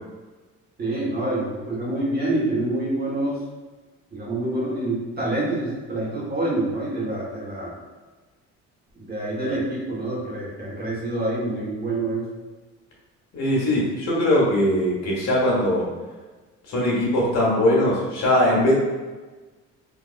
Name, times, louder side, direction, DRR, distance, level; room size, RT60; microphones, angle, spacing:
voice 1, 0.8-3.4 4.1-7.8 8.9-12.3, right 2 dB, 30° right, -6 dB, 1.4 m, -27 dB
voice 2, 13.3-15.9 16.7-18.7, left 1 dB, 60° left, -4 dB, 1.4 m, -20 dB
3.8 x 2.8 x 2.5 m, 1.3 s
cardioid pair, 105°, 29 cm